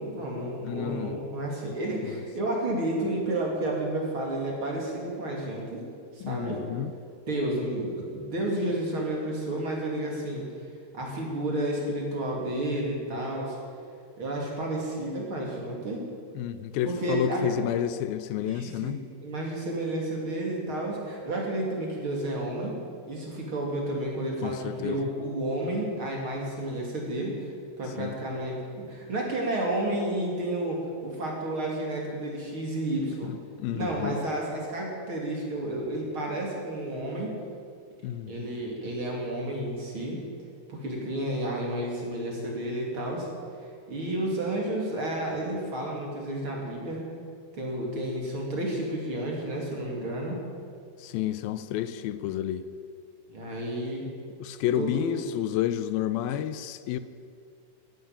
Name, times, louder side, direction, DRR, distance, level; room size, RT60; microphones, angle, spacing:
voice 1, 0.0-5.8 6.1-6.6 7.3-10.5 10.9-13.6 14.2-16.0 16.8-17.5 18.4-22.8 23.0-33.3 33.7-37.3 38.3-40.2 40.7-43.3 43.9-47.0 47.5-50.4 53.3-54.0 54.8-55.2, right 1 dB, 35° right, 3.1 m, -31 dB
voice 2, 0.6-1.2 2.0-2.1 6.2-6.9 16.4-19.0 24.4-25.0 28.0-28.1 33.3-34.2 38.0-38.5 51.0-52.7 54.4-57.0, left 11 dB, 85° left, 2.4 m, -30 dB
13.5 x 11.5 x 8.9 m
omnidirectional pair, 4.3 m